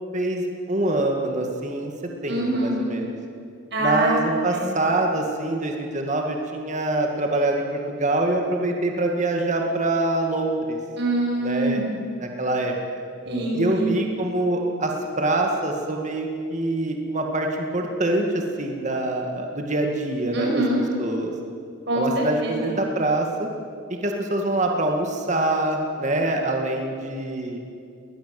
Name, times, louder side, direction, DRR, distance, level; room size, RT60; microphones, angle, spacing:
voice 1, 0.1-1.9 2.2-3.2 3.8-10.8 11.4-11.8 12.2-12.7 13.5-20.5 21.0-21.3 21.9-23.5 23.9-27.6, right 2 dB, 35° right, 2 dB, 2.1 m, -25 dB
voice 2, 2.3-2.7 3.7-4.6 11.0-11.9 13.2-13.9 20.3-20.8 21.9-22.7, right 1 dB, 60° right, -1 dB, 6.2 m, -24 dB
20.5 x 20.5 x 7.8 m, 2.4 s
head